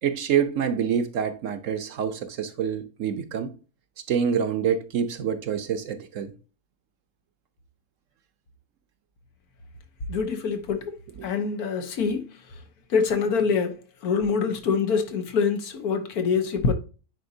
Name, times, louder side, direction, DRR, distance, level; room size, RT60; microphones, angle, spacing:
voice 1, 0.0-3.5 4.1-6.3 11.2-11.3, right 7 dB, 65° right, 1.1 m, -26 dB
voice 2, 10.1-10.9 11.2-12.3 12.9-13.7 14.0-16.7, left 5 dB, 85° left, 1.5 m, -25 dB
9.4 x 4.1 x 2.7 m
omnidirectional pair, 1.6 m